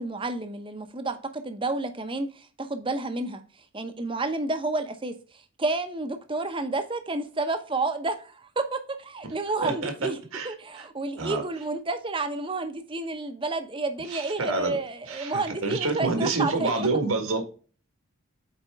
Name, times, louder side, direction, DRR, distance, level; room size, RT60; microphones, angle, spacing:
voice 1, 0.0-3.4 3.7-10.2 10.4-16.9, right 2 dB, 25° right, 0.8 m, -30 dB
voice 2, 14.1-14.8 15.1-17.5, right 3 dB, 75° right, 1.8 m, -27 dB
8.3 x 4.3 x 3.5 m
head